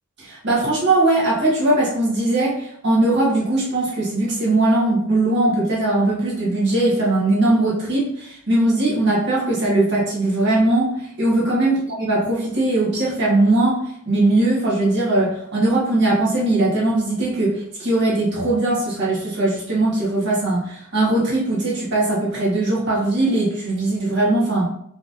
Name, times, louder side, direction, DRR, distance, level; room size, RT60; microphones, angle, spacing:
voice 1, 0.2-24.7, right 2 dB, 55° right, -6 dB, 1.8 m, -20 dB
4.7 x 3.8 x 2.7 m, 0.70 s
head